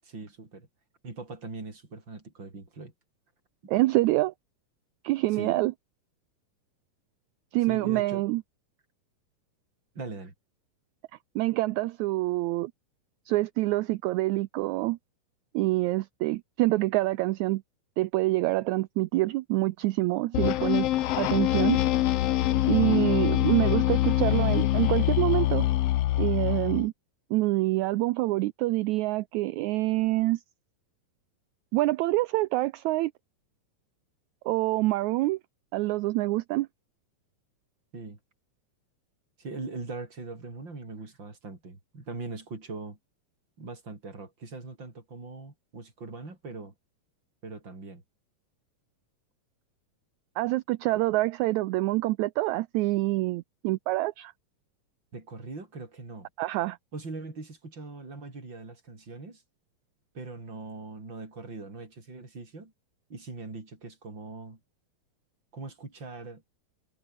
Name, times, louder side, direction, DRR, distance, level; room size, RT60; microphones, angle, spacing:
voice 1, 0.0-0.7 1.0-2.9 5.3-5.6 7.6-8.2 9.9-10.3 37.9-38.2 39.4-43.0 43.6-46.7 47.4-48.0 55.1-56.3 56.9-59.4 60.1-62.7 63.1-64.6 65.5-66.4, right 3 dB, 30° right, 6.6 m, -41 dB
voice 2, 3.7-4.3 5.0-5.7 7.5-8.4 11.3-12.7 13.3-15.0 15.5-17.6 18.0-20.9 21.2-21.8 22.7-25.7 26.2-26.9 27.3-30.4 31.7-33.1 34.4-35.4 35.7-36.7 50.4-54.3 56.4-56.8, right 19 dB, 80° right, 1.7 m, -26 dB
sound 1, 20.3-26.9, left 14 dB, 85° left, 1.3 m, -24 dB
omnidirectional pair, 3.9 m